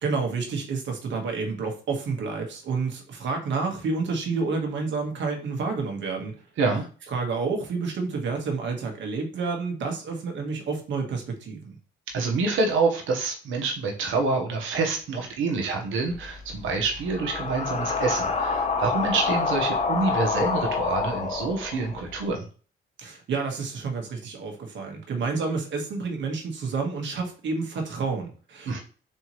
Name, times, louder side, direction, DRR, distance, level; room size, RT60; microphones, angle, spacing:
voice 1, 0.0-6.3 7.1-11.8 23.0-28.8, right 4 dB, 65° right, 3 dB, 1.5 m, -29 dB
voice 2, 12.1-22.4 28.6-28.8, right 3 dB, 85° right, 1 dB, 1.2 m, -27 dB
sound 1, 16.1-22.2, left 4 dB, 35° left, 0.9 m, -28 dB
4.2 x 3.4 x 3.1 m, 0.39 s
cardioid pair, 90°, 20 cm